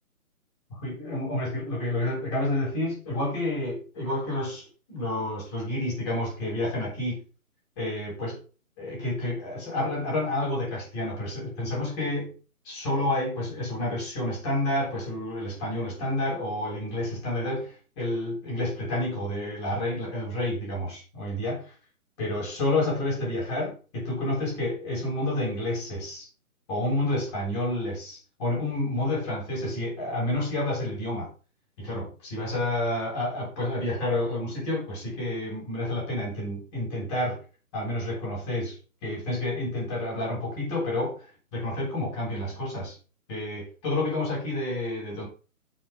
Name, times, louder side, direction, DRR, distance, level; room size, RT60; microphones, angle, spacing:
voice 1, 0.7-7.2 7.8-8.4 8.8-12.3 12.6-21.6 22.2-26.3 26.7-31.3 31.8-37.4 37.7-41.2 41.5-42.9 43.3-45.3, left 1 dB, 20° left, 6.8 m, -29 dB
12.0 x 7.2 x 3.9 m
hypercardioid pair, 175°, 44 cm